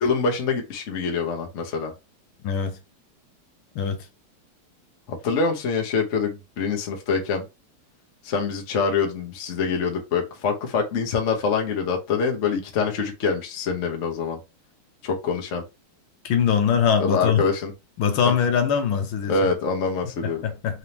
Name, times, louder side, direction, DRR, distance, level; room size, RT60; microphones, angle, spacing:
voice 1, 0.0-1.9 5.1-7.5 8.2-14.4 15.0-15.6 17.0-17.7 19.3-20.4, left 5 dB, 50° left, 0.9 m, -25 dB
voice 2, 2.4-2.8 3.7-4.0 16.2-17.4 18.0-19.4 20.2-20.8, left 7 dB, 75° left, 1.5 m, -22 dB
4.0 x 3.4 x 2.9 m
omnidirectional pair, 2.4 m